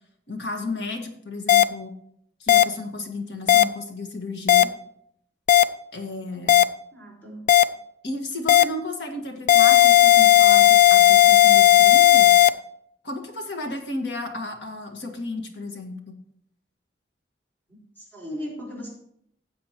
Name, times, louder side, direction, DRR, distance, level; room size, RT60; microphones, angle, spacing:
voice 1, 0.3-1.9 2.4-4.7 5.9-6.6 8.0-12.3 13.0-16.2, left 2 dB, 75° left, 4 dB, 1.7 m, -33 dB
sound 1, 1.5-1.6 2.5-2.6 3.5-3.6 4.5-4.6 5.5-5.6 6.5-6.6 7.5-7.6 8.5-8.6 9.5-12.5, left 13 dB, 50° left, 0.4 m, -14 dB
voice 2, 6.9-7.4 17.7-18.9, equal, 10° left, -3 dB, 4.6 m, -37 dB
15.5 x 7.6 x 3.0 m, 0.70 s
head